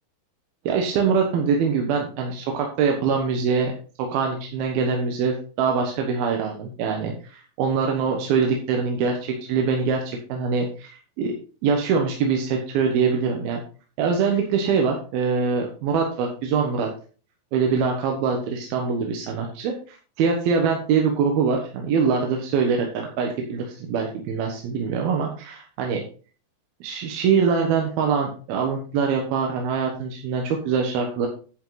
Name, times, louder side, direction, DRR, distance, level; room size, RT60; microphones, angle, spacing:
voice 1, 0.7-3.7 4.1-11.3 11.6-13.6 14.0-16.9 17.5-26.0 26.8-31.3, right 5 dB, 85° right, 2 dB, 3.2 m, -23 dB
11.0 x 7.6 x 4.0 m, 0.38 s
omnidirectional pair, 4.2 m